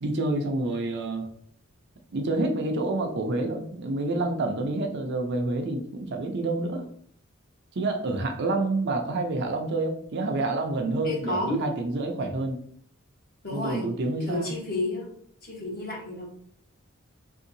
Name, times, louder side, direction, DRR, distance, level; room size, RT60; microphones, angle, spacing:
voice 1, 0.0-1.3 2.1-6.9 7.8-12.6 13.5-14.5, right 2 dB, 55° right, 4 dB, 0.5 m, -28 dB
voice 2, 11.0-11.6 13.4-13.9 14.3-15.1 15.4-16.3, left 1 dB, 45° left, -2 dB, 1.1 m, -30 dB
3.6 x 2.7 x 2.6 m, 0.62 s
head